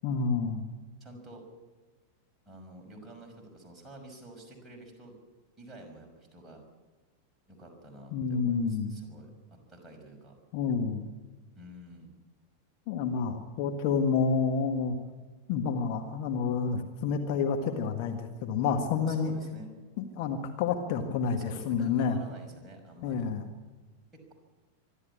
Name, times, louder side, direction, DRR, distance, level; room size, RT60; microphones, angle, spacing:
voice 1, 0.0-0.6 8.1-8.9 10.5-11.1 12.9-15.0 15.5-19.3 20.0-22.2 23.0-23.5, left 5 dB, 45° left, 4 dB, 1.7 m, -29 dB
voice 2, 1.0-1.4 2.5-5.1 5.6-6.6 7.5-10.3 11.6-12.1 19.1-19.7 21.4-23.3 24.1-24.3, right 1 dB, 10° right, 0 dB, 5.8 m, -49 dB
24.5 x 12.5 x 8.5 m, 1.3 s
figure-of-eight pair, 90°, 0 cm